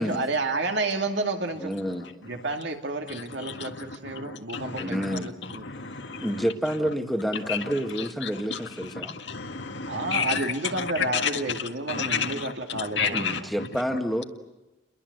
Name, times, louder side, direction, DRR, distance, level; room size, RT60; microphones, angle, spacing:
voice 1, 0.0-1.7 2.2-5.7 9.9-13.5, right 2 dB, 60° right, 2.5 m, -30 dB
voice 2, 1.6-2.1 4.8-5.3 6.2-9.2 13.1-14.2, equal, ahead, 1.8 m, -29 dB
voice 3, 4.5-4.8 5.6-6.3 7.5-7.6 8.2-8.6 9.2-10.4 11.0-11.3 11.9-12.5 12.8-13.4, left 6 dB, 60° left, 1.8 m, -30 dB
30.0 x 22.5 x 8.0 m
head